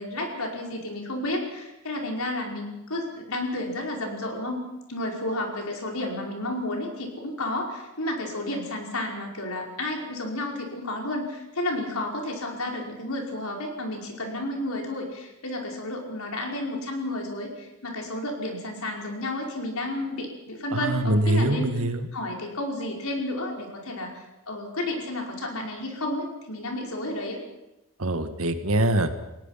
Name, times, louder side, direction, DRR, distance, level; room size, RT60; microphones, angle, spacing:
voice 1, 0.0-4.6 4.9-21.7 22.1-27.4, left 1 dB, 90° left, 1 dB, 5.3 m, -31 dB
voice 2, 20.7-22.1 28.0-29.1, right 1 dB, 80° right, 8 dB, 1.9 m, -24 dB
30.0 x 17.5 x 5.9 m, 0.95 s
head